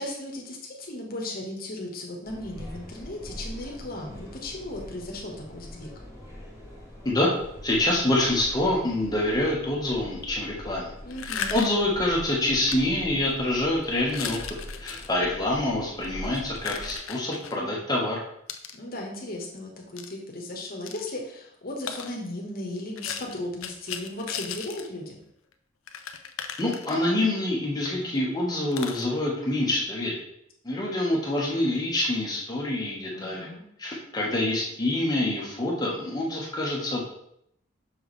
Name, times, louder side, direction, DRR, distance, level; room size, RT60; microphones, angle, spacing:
voice 1, 0.0-5.9 11.0-11.6 18.7-25.2 33.1-33.6, left 1 dB, 50° left, 1 dB, 1.3 m, -36 dB
sound 1, 2.2-17.0, left 1 dB, 15° right, 2.4 m, -43 dB
voice 2, 7.6-10.9 11.5-14.4 14.8-18.2 26.6-30.2 30.6-33.5 33.8-37.0, left 1 dB, 20° left, -4 dB, 1.2 m, -26 dB
sound 2, 11.1-11.9 12.7-12.8 13.3-13.5 14.0-15.1 15.9-17.6 18.5-18.8 20.0-20.1 20.9-21.0 21.9-22.1 23.0-24.9 25.2-25.3 25.5-25.6 25.9-27.3 27.8-27.9 28.2-28.3 28.7-29.1, left 7 dB, 90° left, 0.5 m, -36 dB
6.3 x 4.7 x 3.2 m, 0.73 s
head